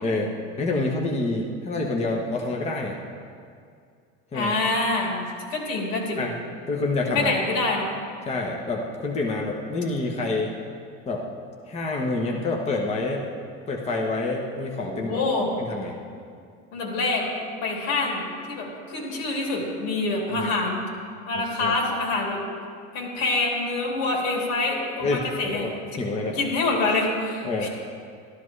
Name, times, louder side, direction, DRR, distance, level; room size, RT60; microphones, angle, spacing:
voice 1, 0.0-3.0 4.3-4.5 6.2-6.3 6.7-7.3 8.2-10.5 11.1-11.2 11.7-13.2 13.7-15.2 15.6-15.9 20.3-20.5 21.3-21.8 25.0-25.7 26.0-26.4 27.4-27.7, left 2 dB, 20° left, 0 dB, 0.9 m, -27 dB
voice 2, 4.3-6.2 7.1-7.9 14.9-15.5 16.7-17.2 17.6-20.8 21.3-22.4 22.9-25.6 25.9-26.0 26.3-27.7, left 3 dB, 80° left, -2 dB, 3.2 m, -26 dB
13.0 x 12.5 x 3.2 m, 2.2 s
cardioid pair, 145°, 34 cm